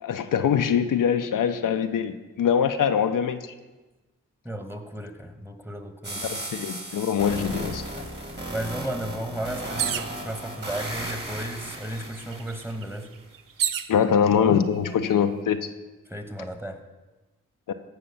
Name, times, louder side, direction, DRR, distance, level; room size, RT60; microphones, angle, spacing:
voice 1, 0.0-3.5 6.2-7.8 13.9-15.7 17.7-17.8, left 7 dB, 75° left, 7 dB, 0.7 m, -23 dB
voice 2, 4.4-6.3 8.5-13.1 16.1-16.8, right 1 dB, 5° right, 7 dB, 1.5 m, -34 dB
sound 1, 6.0-13.0, right 1 dB, 30° right, 2.9 m, -36 dB
sound 2, 9.8-10.2 11.1-11.2 11.5-13.9 14.7-15.2, right 10 dB, 80° right, 0.6 m, -30 dB
15.5 x 5.7 x 5.7 m, 1.1 s
supercardioid pair, 40°, 32 cm